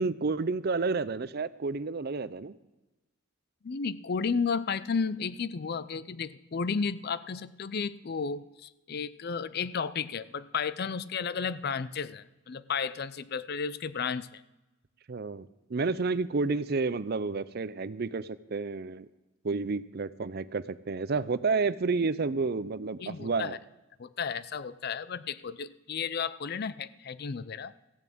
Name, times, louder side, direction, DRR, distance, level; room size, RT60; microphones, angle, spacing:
voice 1, 0.0-2.5 15.1-19.1 19.4-23.6, right 4 dB, 50° right, 16 dB, 0.5 m, -30 dB
voice 2, 3.6-14.4 23.0-23.6 24.0-27.7, left 5 dB, 50° left, 16 dB, 0.5 m, -33 dB
15.0 x 7.1 x 8.6 m, 1.0 s
head